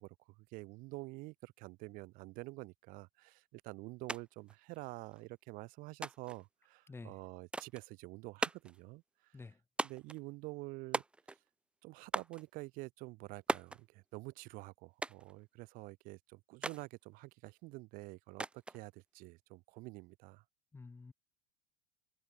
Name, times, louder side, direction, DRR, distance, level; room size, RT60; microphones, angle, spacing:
voice 1, 0.0-9.4 9.8-11.0 11.8-20.4, right 23 dB, 55° right, 2.0 m, -48 dB
sound 1, 4.1-4.2 4.5-5.2 6.0-6.4 7.5-7.8 8.4-8.8 9.8-10.2 10.9-11.5 12.1-12.4 13.5-13.8 15.0-15.3 16.6-16.8 18.4-18.8, right 2 dB, 5° right, 0.3 m, -38 dB
voice 2, 20.7-21.1, left 4 dB, 15° left, 1.2 m, -50 dB
hypercardioid pair, 85°, 17 cm